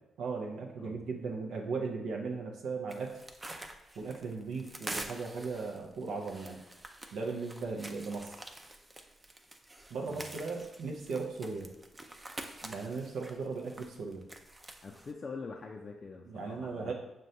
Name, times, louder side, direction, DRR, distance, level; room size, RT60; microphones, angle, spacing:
voice 1, 0.2-3.2 4.0-6.6 7.1-8.3 9.9-11.7 12.6-14.3 16.3-16.9, right 4 dB, 75° right, 0 dB, 0.5 m, -37 dB
sound 1, 2.9-15.1, right 1 dB, 25° right, 0.4 m, -47 dB
voice 2, 14.8-16.9, left 4 dB, 45° left, 1 dB, 0.4 m, -44 dB
6.1 x 2.2 x 2.6 m, 0.98 s
supercardioid pair, 55°, 0 cm